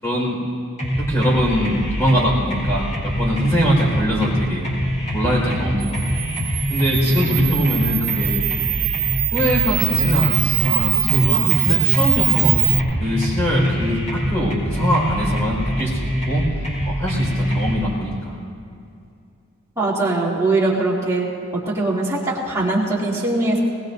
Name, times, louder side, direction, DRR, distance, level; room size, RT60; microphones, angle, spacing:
voice 1, 0.0-0.4 1.0-4.7 5.1-6.2 6.7-8.4 9.3-16.4 16.8-18.4, equal, 15° left, -5 dB, 4.8 m, -22 dB
sound 1, 0.8-17.8, equal, 35° left, 4.2 m, -24 dB
Camera, 5.8-12.8, right 16 dB, 85° right, 0.7 m, -22 dB
voice 2, 19.8-21.3 21.7-23.6, right 2 dB, 15° right, -7 dB, 2.8 m, -21 dB
21.0 x 20.0 x 2.7 m, 2.5 s
head